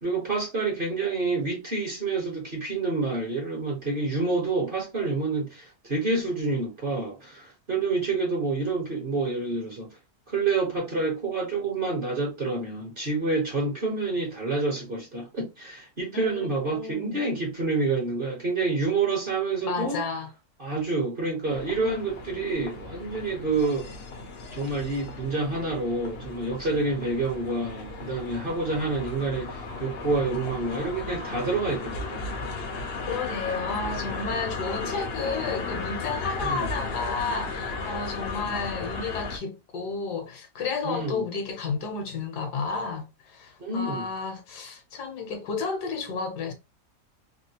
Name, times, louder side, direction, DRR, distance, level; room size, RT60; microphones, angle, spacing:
voice 1, 0.0-10.0 10.3-20.0 20.6-23.9 24.5-32.3 36.4-36.7 40.8-41.2 43.6-44.1, right 3 dB, 40° right, 1.0 m, -28 dB
voice 2, 16.1-17.2 19.6-20.3 33.0-46.5, left 4 dB, 75° left, 1.3 m, -32 dB
sound 1, 21.5-39.4, left 3 dB, 55° left, 0.7 m, -35 dB
3.5 x 2.3 x 2.8 m
omnidirectional pair, 1.8 m